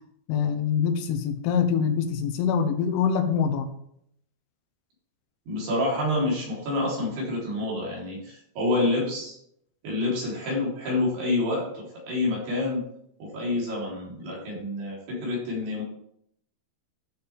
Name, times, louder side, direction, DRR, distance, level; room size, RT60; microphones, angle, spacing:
voice 1, 0.3-3.7, left 7 dB, 85° left, 6 dB, 3.6 m, -24 dB
voice 2, 5.5-9.4 9.8-12.9 13.2-15.8, left 2 dB, 55° right, -4 dB, 5.5 m, -28 dB
13.5 x 7.1 x 3.5 m, 0.71 s
omnidirectional pair, 5.6 m